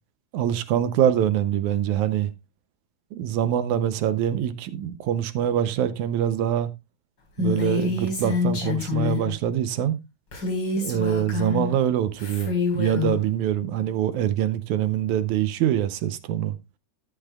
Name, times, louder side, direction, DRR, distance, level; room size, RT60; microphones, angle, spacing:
voice 1, 0.3-2.3 3.1-6.7 7.4-10.0 10.7-16.6, right 10 dB, 75° right, 2.1 m, -24 dB
Female speech woman speaking, 7.4-9.3 10.3-11.7 12.2-13.1, left 4 dB, 35° left, 5.0 m, -26 dB
13.0 x 10.0 x 2.3 m
omnidirectional pair, 3.5 m